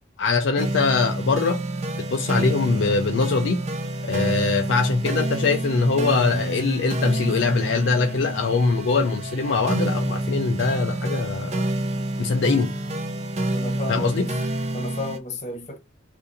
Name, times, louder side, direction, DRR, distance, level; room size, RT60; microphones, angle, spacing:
voice 1, 0.2-1.6 2.1-3.6 4.0-11.7 12.2-12.7 13.9-14.3, left 4 dB, 65° left, 0.4 m, -22 dB
sound 1, 0.6-15.2, right 1 dB, 35° right, 0.5 m, -28 dB
voice 2, 13.5-14.3 14.7-15.8, left 1 dB, 35° left, 0.8 m, -33 dB
2.6 x 2.6 x 3.8 m
head